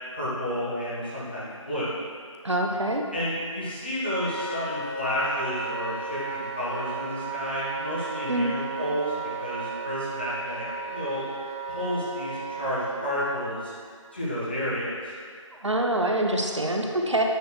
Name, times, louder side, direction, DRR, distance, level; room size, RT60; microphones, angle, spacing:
voice 1, 0.1-2.0 3.1-9.1 9.4-11.2 11.7-13.7 14.1-15.1, left 1 dB, 20° left, -10 dB, 1.2 m, -31 dB
voice 2, 2.4-3.0 8.3-8.5 15.6-17.2, right 1 dB, 60° right, 1 dB, 0.9 m, -25 dB
Wind instrument woodwind instrument, 4.0-13.4, right 4 dB, 25° right, 0.7 m, -34 dB
9.3 x 3.3 x 6.3 m, 2.1 s
figure-of-eight pair, 170°, 17 cm